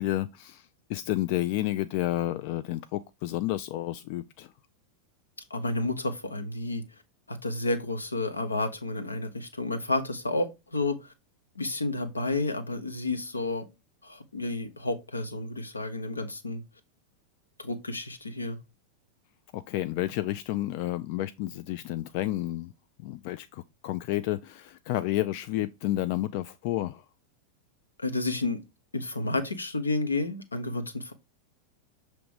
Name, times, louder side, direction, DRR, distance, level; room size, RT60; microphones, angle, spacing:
voice 1, 0.0-4.5 19.5-22.7 23.0-27.0, left 15 dB, 45° left, 0.3 m, -31 dB
voice 2, 5.5-6.8 7.3-11.1 11.6-13.7 14.0-16.6 17.6-18.6 28.0-28.6 28.9-31.1, left 2 dB, 80° left, 1.0 m, -31 dB
6.8 x 3.1 x 4.9 m
figure-of-eight pair, 90°, 0 cm